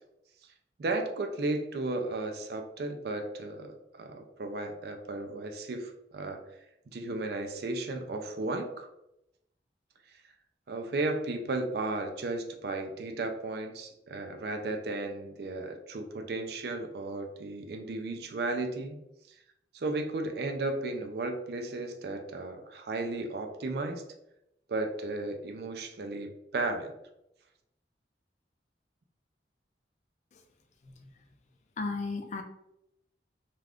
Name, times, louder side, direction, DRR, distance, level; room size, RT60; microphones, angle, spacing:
voice 1, 0.8-6.4 6.9-8.9 10.7-19.0 19.7-24.0 24.7-26.9, right 2 dB, 60° right, 5 dB, 0.4 m, -34 dB
voice 2, 31.8-32.4, left 3 dB, 40° left, 4 dB, 0.4 m, -35 dB
2.4 x 2.4 x 3.4 m, 0.84 s
head